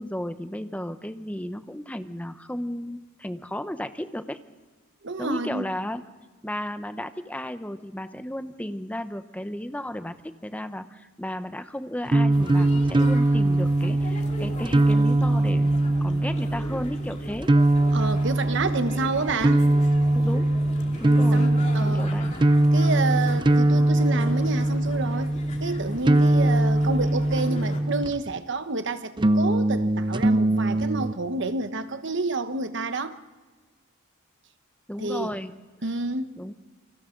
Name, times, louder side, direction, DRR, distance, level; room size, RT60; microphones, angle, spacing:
voice 1, 0.0-4.4 5.2-6.0 6.4-17.5 18.6-18.8 20.1-20.5 21.0-21.4 21.8-22.3 34.9-35.5 36.4-36.5, left 1 dB, 5° left, 0.8 m, -34 dB
voice 2, 5.0-5.7 17.9-19.7 21.3-22.1 22.7-33.2 35.0-35.3 35.8-36.4, right 3 dB, 60° right, 1.1 m, -29 dB
sound 1, 12.1-28.4 29.2-31.1, right 1 dB, 25° right, 0.5 m, -22 dB
sound 2, 12.3-27.8, left 1 dB, 35° left, 2.7 m, -39 dB
29.0 x 24.5 x 3.9 m
head